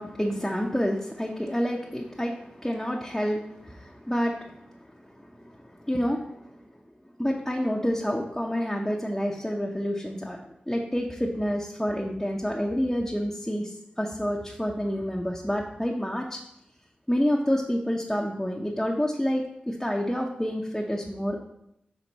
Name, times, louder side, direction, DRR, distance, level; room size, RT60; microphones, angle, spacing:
voice 1, 0.0-6.6 7.2-16.4 17.1-21.4, equal, 10° left, -1 dB, 0.7 m, -29 dB
6.0 x 4.4 x 4.0 m, 0.80 s
cardioid pair, 50°, 3 cm